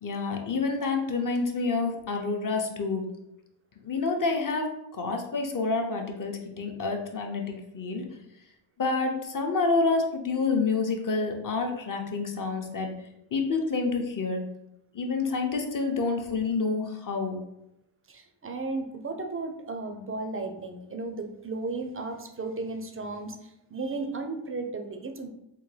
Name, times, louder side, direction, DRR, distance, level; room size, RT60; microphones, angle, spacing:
voice 1, 0.0-3.0 3.8-8.0 8.8-12.9 13.3-14.4 14.9-17.4, left 4 dB, 40° left, 3 dB, 0.7 m, -28 dB
voice 2, 18.1-25.3, right 3 dB, 30° right, 5 dB, 0.4 m, -35 dB
3.6 x 2.2 x 3.2 m, 0.85 s
cardioid pair, 75°, 50 cm